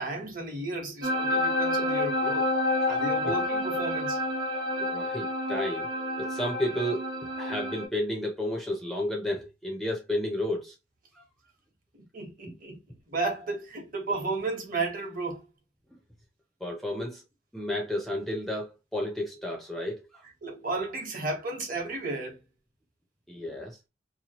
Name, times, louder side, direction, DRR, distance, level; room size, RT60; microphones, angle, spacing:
voice 1, 0.0-2.5 2.9-4.2 11.9-12.8 13.1-15.4 20.4-22.4, right 3 dB, 45° right, 1.0 m, -33 dB
sound 1, 1.0-7.9, left 1 dB, 75° right, 1.0 m, -29 dB
voice 2, 2.9-3.3 4.8-5.9 6.2-7.1 7.4-10.8 11.2-11.3 16.6-17.2 17.5-20.2 23.3-23.8, left 1 dB, ahead, 0.5 m, -32 dB
2.9 x 2.2 x 2.8 m
head